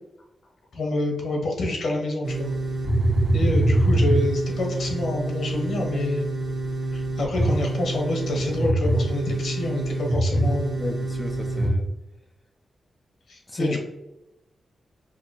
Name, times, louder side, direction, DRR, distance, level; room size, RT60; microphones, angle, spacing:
voice 1, 0.7-2.5 3.3-6.3 6.9-10.8 13.3-13.8, left 2 dB, 75° left, 0 dB, 1.1 m, -27 dB
sound 1, 2.2-11.7, right 1 dB, 40° right, 1.1 m, -25 dB
voice 2, 10.7-11.8 13.5-13.8, left 1 dB, 15° left, 3 dB, 0.4 m, -32 dB
5.1 x 2.6 x 2.8 m, 0.95 s
wide cardioid pair, 120°, 0 cm